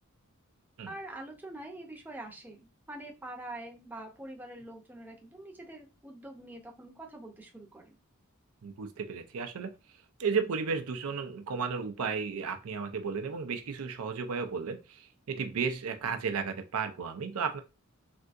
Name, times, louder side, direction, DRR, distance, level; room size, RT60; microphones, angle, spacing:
voice 1, 0.9-8.0, right 1 dB, 10° right, 0.6 m, -45 dB
voice 2, 8.6-9.7 10.2-17.6, right 5 dB, 75° right, 0.5 m, -33 dB
3.4 x 2.7 x 2.5 m
head